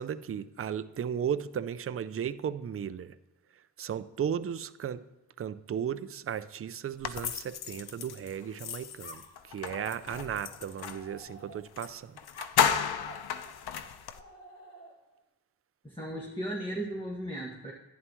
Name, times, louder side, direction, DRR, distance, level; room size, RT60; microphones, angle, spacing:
voice 1, 0.0-3.2 3.8-5.0 5.4-12.2, right 8 dB, 35° right, 0.5 m, -35 dB
sound 1, 7.0-11.1 11.8-11.9 12.2-14.2, left 8 dB, 70° left, 0.7 m, -33 dB
sound 2, 9.0-11.9 12.3-15.2, right 1 dB, 40° left, 2.1 m, -52 dB
voice 2, 15.8-17.7, right 1 dB, 10° left, 1.8 m, -36 dB
11.0 x 9.5 x 3.1 m
cardioid pair, 70°, 40 cm